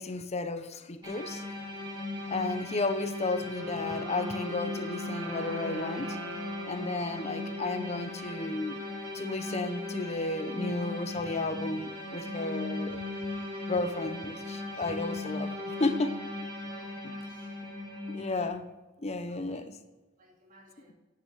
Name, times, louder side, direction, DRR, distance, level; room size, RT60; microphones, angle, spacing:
voice 1, 0.0-1.4 2.3-6.2 6.7-8.9 9.1-13.0 13.7-16.2 18.1-18.7 19.0-19.8, left 2 dB, 35° left, 0.8 m, -33 dB
sound 1, 1.0-18.5, left 2 dB, 25° right, 3.4 m, -38 dB
Wind instrument woodwind instrument, 3.4-8.2, right 3 dB, 75° right, 1.2 m, -42 dB
voice 2, 16.7-17.7 19.3-19.7 20.2-20.9, right 1 dB, 45° right, 2.4 m, -59 dB
9.7 x 6.5 x 7.3 m
head